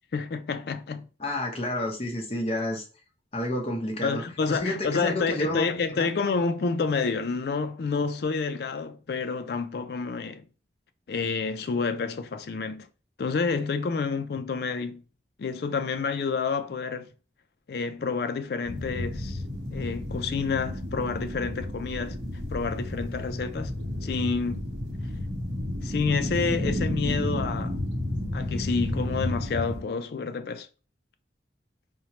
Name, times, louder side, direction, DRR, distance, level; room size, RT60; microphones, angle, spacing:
voice 1, 0.1-1.1 4.0-10.5 11.1-12.9 13.2-15.0 15.4-17.1 17.7-19.4 19.7-22.2 22.5-23.7 24.0-24.6 25.8-27.8 28.3-30.7, left 4 dB, 60° left, 0.4 m, -29 dB
voice 2, 1.2-2.8 3.3-4.2 4.5-5.6 5.9-6.1, left 1 dB, 30° left, 0.8 m, -30 dB
sound 1, 18.6-29.8, left 1 dB, 75° right, 1.0 m, -32 dB
4.2 x 2.1 x 2.9 m
head